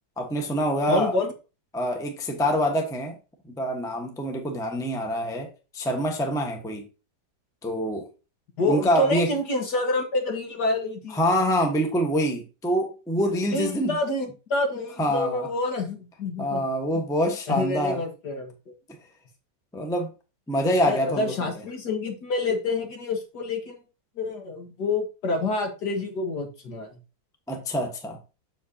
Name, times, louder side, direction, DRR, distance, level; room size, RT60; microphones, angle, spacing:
voice 1, 0.2-1.1 1.7-3.2 3.5-5.5 5.7-6.8 7.6-8.0 8.6-9.3 11.1-14.0 15.0-15.5 16.4-18.0 19.7-20.1 20.5-21.4 27.5-28.2, equal, ahead, 0.9 m, -25 dB
voice 2, 0.9-1.3 8.6-11.2 13.5-16.6 16.9-17.0 17.5-18.7 20.6-23.8 24.2-26.9, left 2 dB, 60° left, 2.0 m, -28 dB
7.5 x 6.9 x 2.8 m
omnidirectional pair, 2.0 m